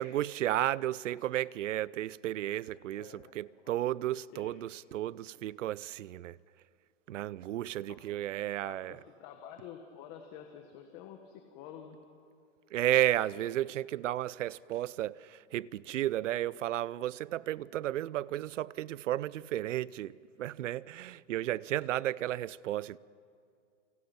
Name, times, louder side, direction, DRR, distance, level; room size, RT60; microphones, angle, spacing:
voice 1, 0.0-6.4 7.1-9.0 12.7-23.0, right 13 dB, 75° right, 0.6 m, -33 dB
voice 2, 2.7-3.3 3.6-3.8 4.3-4.6 7.9-8.1 8.6-12.0, left 9 dB, 30° left, 1.4 m, -49 dB
29.0 x 25.5 x 6.0 m
hypercardioid pair, 165°, 38 cm